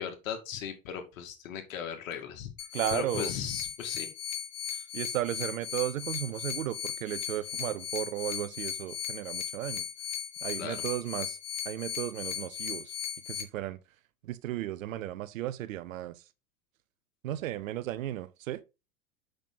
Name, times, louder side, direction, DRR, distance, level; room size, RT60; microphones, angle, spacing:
voice 1, 0.0-2.5 2.9-4.1 4.7-4.8 10.6-10.8, left 8 dB, 65° left, 2.6 m, -37 dB
sound 1, 2.6-13.4, left 9 dB, 35° left, 2.3 m, -37 dB
voice 2, 2.7-3.3 4.9-9.8 10.4-11.4 11.6-12.9 13.3-13.8 14.2-16.1 17.2-18.6, right 13 dB, 70° right, 0.9 m, -34 dB
7.9 x 6.4 x 4.0 m
figure-of-eight pair, 85°, 42 cm